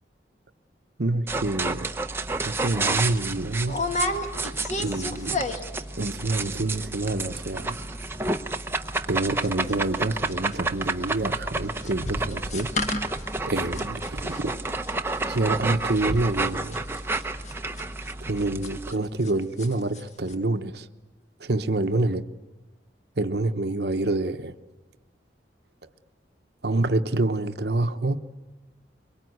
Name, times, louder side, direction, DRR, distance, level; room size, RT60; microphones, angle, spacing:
voice 1, 1.0-1.9 2.4-3.8 4.8-5.5 6.0-7.8 9.1-12.7 13.5-14.5 15.3-16.8 18.3-20.9 21.4-22.2 23.2-24.6 25.8-25.9 26.6-28.2, right 2 dB, 60° right, 0.9 m, -27 dB
sound 1, 1.3-18.9, right 3 dB, 15° right, 0.8 m, -30 dB
sound 2, 2.3-2.5 2.8-3.0 3.7-5.8 6.1-6.5 6.7-6.8 7.1-7.4 7.7-10.0 10.3-19.3 19.6-20.0 20.3-20.4, left 2 dB, 40° left, 1.7 m, -33 dB
23.5 x 23.0 x 9.4 m
head